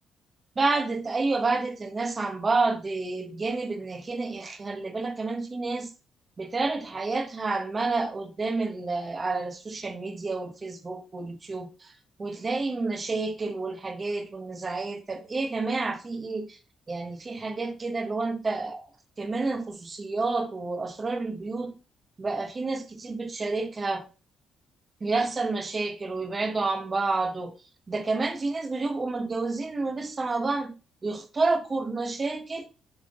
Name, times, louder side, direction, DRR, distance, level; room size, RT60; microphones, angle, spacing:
voice 1, 0.6-5.9 6.4-11.9 12.2-16.6 16.9-18.8 19.2-21.7 22.2-24.0 25.0-27.5 27.9-30.8 31.0-32.7, right 3 dB, 30° right, 1.2 m, -29 dB
7.3 x 3.7 x 3.8 m
cardioid pair, 90°, 0 cm